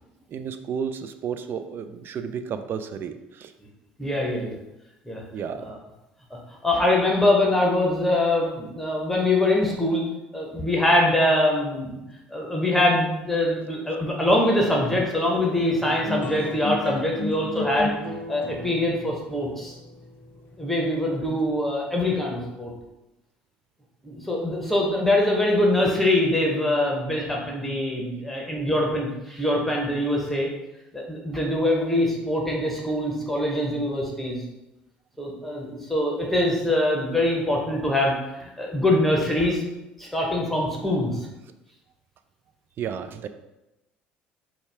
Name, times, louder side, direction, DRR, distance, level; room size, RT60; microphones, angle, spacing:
voice 1, 0.3-3.5 5.3-5.6 42.8-43.3, right 7 dB, 45° right, 10 dB, 0.3 m, -32 dB
voice 2, 4.0-4.5 5.1-5.2 5.6-5.7 6.6-10.0 10.3-12.0 12.3-17.9 18.3-19.7 20.6-22.7 24.0-30.5 30.9-34.4 35.2-39.6 40.0-41.2, left 1 dB, 5° left, -2 dB, 1.0 m, -23 dB
sound 1, 15.3-22.0, left 2 dB, 40° left, 0.7 m, -33 dB
4.1 x 2.3 x 3.4 m, 0.96 s
hypercardioid pair, 65°, 5 cm